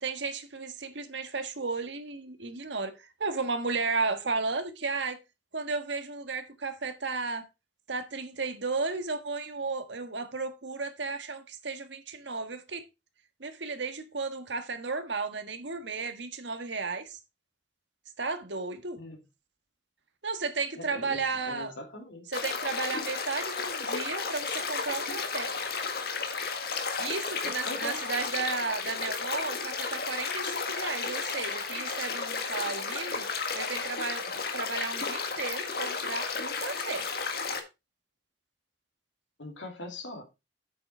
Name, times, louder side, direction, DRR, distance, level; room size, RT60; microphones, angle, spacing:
voice 1, 0.0-5.2 5.5-7.4 7.9-12.8 13.4-17.2 18.2-19.0 20.2-21.7 22.3-25.5 27.0-33.3 33.5-37.1, right 4 dB, 75° right, 1.5 m, -34 dB
voice 2, 20.8-22.3 27.4-28.0 39.4-40.2, left 1 dB, 85° left, 2.8 m, -41 dB
sound 1, 22.3-37.6, left 5 dB, 55° left, 1.6 m, -33 dB
8.4 x 6.8 x 4.4 m
head